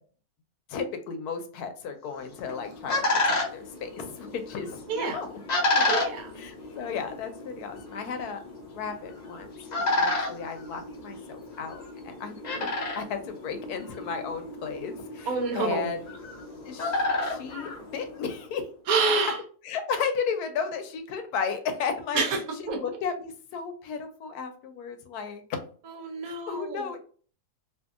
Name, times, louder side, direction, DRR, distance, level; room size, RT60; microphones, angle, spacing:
voice 1, 0.7-5.4 5.8-5.9 6.4-9.5 9.8-12.7 13.0-16.0 16.6-18.7 19.6-22.2 22.6-25.4 26.2-27.0, left 6 dB, 80° left, 7 dB, 1.1 m, -34 dB
sound 1, 2.2-18.5, left 2 dB, 45° left, 0.5 m, -31 dB
voice 2, 4.9-5.2 5.9-6.3 15.3-15.9 18.9-19.4 22.1-22.4 22.7-22.8 25.9-26.9, right 4 dB, 70° right, 3 dB, 1.1 m, -27 dB
2.7 x 2.6 x 2.4 m, 0.43 s
omnidirectional pair, 1.6 m